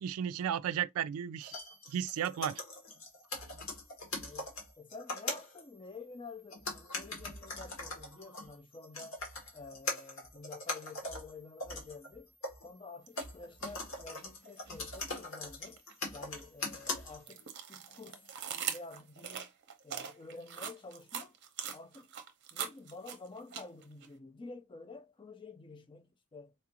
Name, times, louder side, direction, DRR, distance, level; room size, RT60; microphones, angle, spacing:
voice 1, 0.0-1.5 1.9-2.6, right 9 dB, 80° right, 0.3 m, -34 dB
sound 1, 1.4-5.6 6.5-12.7 13.2-17.4 18.3-18.4, left 2 dB, 65° left, 1.4 m, -41 dB
voice 2, 4.2-9.2 9.5-12.3 12.6-15.8 16.1-19.5 19.8-21.4 21.7-22.1 22.5-26.5, left 3 dB, 20° left, 0.4 m, -50 dB
sound 2, 13.1-13.3 13.7-15.2 15.6-24.1, right 8 dB, 50° right, 0.6 m, -42 dB
4.2 x 2.4 x 2.8 m
head